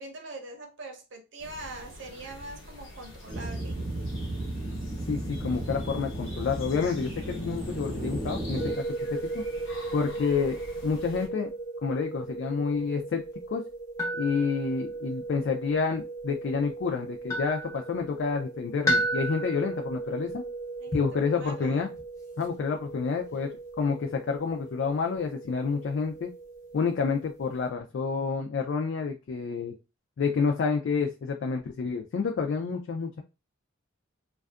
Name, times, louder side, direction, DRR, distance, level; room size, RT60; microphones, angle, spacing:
voice 1, 0.0-3.8 20.8-21.9, right 2 dB, 60° right, 0.7 m, -43 dB
sound 1, 1.4-11.3, left 1 dB, 80° left, 1.0 m, -46 dB
sound 2, 3.3-8.7, right 1 dB, 25° right, 0.7 m, -34 dB
voice 2, 5.1-9.4 9.9-11.5 11.8-13.2 13.5-13.6 14.1-20.4 20.9-21.9 22.4-26.3 26.7-29.7 30.2-33.2, left 5 dB, 60° left, 0.3 m, -29 dB
sound 3, 8.6-27.7, right 2 dB, 15° left, 0.6 m, -35 dB
2.5 x 2.3 x 2.3 m
head